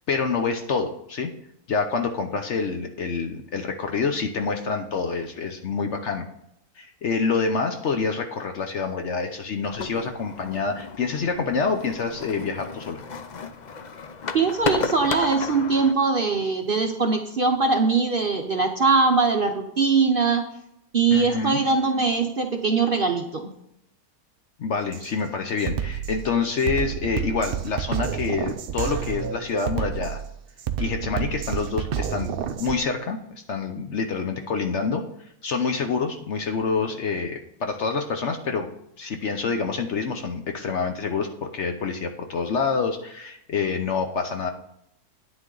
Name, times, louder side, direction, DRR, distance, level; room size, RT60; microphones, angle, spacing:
voice 1, 0.1-1.3 1.7-6.2 6.8-13.0 21.1-21.6 24.6-30.2 30.8-32.3 32.6-33.2 33.5-35.0 35.4-38.7 39.0-44.5, left 5 dB, 55° left, 5 dB, 0.9 m, -27 dB
sound 1, 9.6-15.9, left 5 dB, 70° left, 0.4 m, -33 dB
voice 2, 14.3-20.4 20.9-23.5, right 4 dB, 45° right, 3 dB, 0.7 m, -21 dB
Drum kit, 24.9-25.1 25.6-32.8, right 9 dB, 90° right, 0.5 m, -30 dB
9.5 x 9.4 x 3.9 m, 0.79 s
omnidirectional pair, 1.7 m